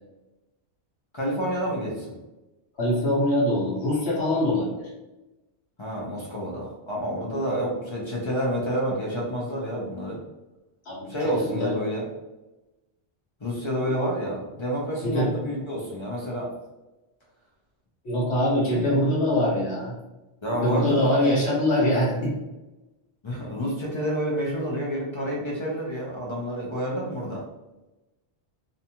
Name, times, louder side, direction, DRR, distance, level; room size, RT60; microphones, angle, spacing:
voice 1, 1.1-2.1 5.8-10.2 11.1-12.0 13.4-16.5 18.6-19.0 20.4-21.3 23.2-27.4, equal, 40° left, -4 dB, 0.4 m, -29 dB
voice 2, 2.8-4.9 10.9-11.8 15.0-15.3 18.0-19.9 20.6-22.3, left 1 dB, 70° left, -6 dB, 1.1 m, -23 dB
2.6 x 2.3 x 2.8 m, 1.0 s
omnidirectional pair, 1.1 m